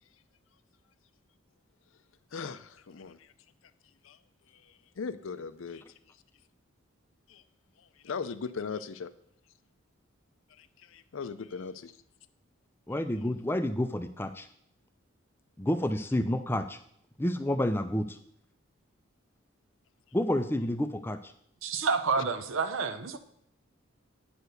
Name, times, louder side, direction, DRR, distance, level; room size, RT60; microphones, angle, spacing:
voice 1, 2.3-3.3 4.0-4.2 4.5-5.8 7.3-7.4 7.8-9.1 10.6-11.9, left 5 dB, 75° left, 13 dB, 0.5 m, -39 dB
voice 2, 12.9-14.5 15.6-16.8 17.2-18.2 20.1-21.3, left 1 dB, 10° left, 9 dB, 0.4 m, -29 dB
voice 3, 21.6-23.2, right 4 dB, 75° right, 10 dB, 0.7 m, -29 dB
9.2 x 4.7 x 6.5 m, 0.70 s
head